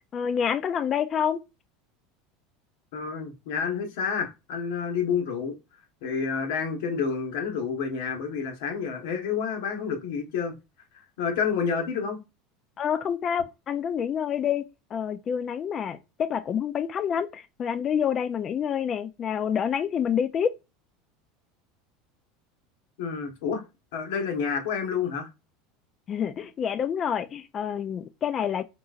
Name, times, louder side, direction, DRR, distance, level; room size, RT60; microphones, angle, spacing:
voice 1, 0.1-1.4 12.8-20.5 26.1-28.6, left 8 dB, 25° left, 0.3 m, -28 dB
voice 2, 2.9-5.5 6.0-10.5 11.2-12.2 23.0-23.6 23.9-25.3, left 6 dB, 75° left, 1.1 m, -29 dB
3.9 x 2.8 x 2.4 m
supercardioid pair, 155°, 0 cm